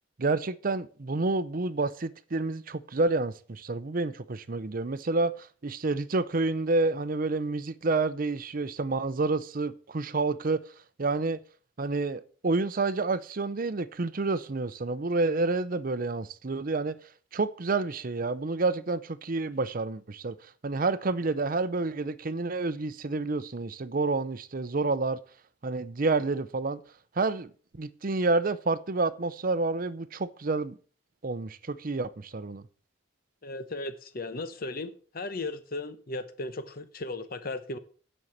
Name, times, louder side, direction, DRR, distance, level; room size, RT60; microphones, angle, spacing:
voice 1, 0.2-10.6 11.0-11.4 11.8-17.0 17.3-25.2 25.6-26.8 27.2-30.8 31.2-32.6, right 3 dB, 45° right, 0.6 m, -29 dB
voice 2, 33.4-37.8, left 2 dB, 50° left, 1.0 m, -36 dB
9.4 x 5.5 x 7.2 m
head